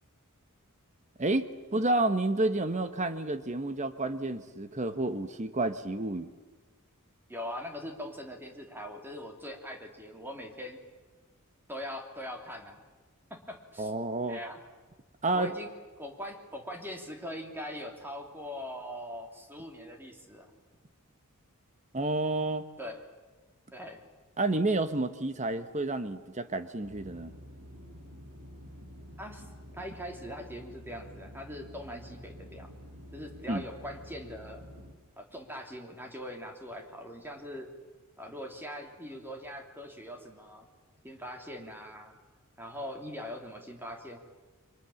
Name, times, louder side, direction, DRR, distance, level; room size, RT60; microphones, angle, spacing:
voice 1, 1.2-6.3 13.8-14.4 15.2-15.5 21.9-22.6 24.4-27.3 33.5-33.6, right 2 dB, 35° right, 10 dB, 1.2 m, -30 dB
voice 2, 7.3-10.8 11.7-12.8 13.3-13.9 14.3-14.6 15.3-15.7 16.0-20.5 22.8-23.0 23.7-24.0 29.2-29.5 29.7-32.7 33.1-34.6 35.2-37.7 38.2-40.7 41.0-42.2 42.6-44.2, equal, 10° right, 3 dB, 3.1 m, -41 dB
sound 1, 26.8-34.9, equal, 75° right, 6.4 m, -49 dB
29.0 x 24.0 x 7.2 m, 1.3 s
head